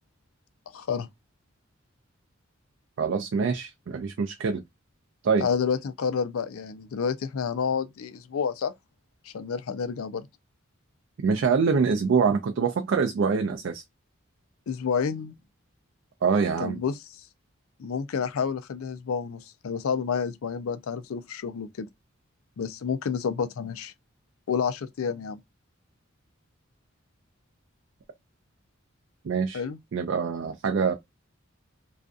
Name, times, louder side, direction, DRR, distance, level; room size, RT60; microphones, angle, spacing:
voice 1, 0.7-1.1 5.4-8.7 9.2-10.3 14.7-15.4 16.6-17.3 17.8-21.9 22.6-23.9 24.5-25.4 29.5-29.8, left 6 dB, 85° left, 0.4 m, -29 dB
voice 2, 3.0-4.6 5.2-5.5 11.2-13.8 16.2-16.8 29.2-29.6 29.9-30.9, right 5 dB, 60° right, 0.3 m, -25 dB
2.5 x 2.3 x 2.3 m
head